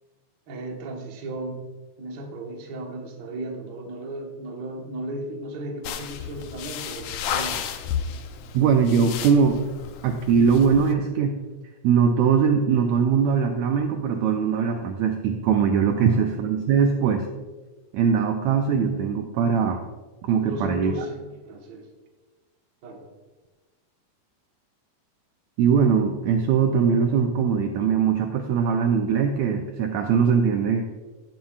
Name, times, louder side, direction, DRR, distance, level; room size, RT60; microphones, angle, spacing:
voice 1, 0.5-1.6 2.0-7.7 15.9-16.2 20.4-21.9 22.8-23.1, right 1 dB, 55° right, 1 dB, 1.2 m, -35 dB
sound 1, 5.8-10.9, left 8 dB, 75° left, 1.6 m, -33 dB
voice 2, 8.5-9.6 10.0-11.4 11.8-17.3 17.9-19.8 20.2-20.9 25.6-30.8, right 6 dB, 80° right, 4 dB, 1.6 m, -21 dB
16.0 x 7.4 x 2.4 m, 1.2 s
omnidirectional pair, 3.8 m